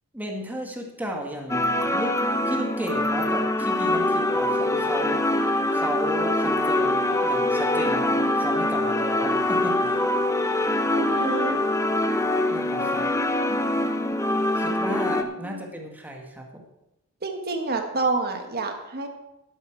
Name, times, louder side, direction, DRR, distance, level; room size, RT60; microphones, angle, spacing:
voice 1, 0.1-10.0 12.5-13.1 14.5-16.6, equal, 10° right, 1 dB, 1.7 m, -34 dB
sound 1, 1.5-15.2, left 1 dB, 15° left, 0.7 m, -24 dB
voice 2, 10.9-11.6 15.4-15.6 17.2-19.1, right 3 dB, 45° right, 4 dB, 1.6 m, -28 dB
11.5 x 11.5 x 4.6 m, 0.91 s
head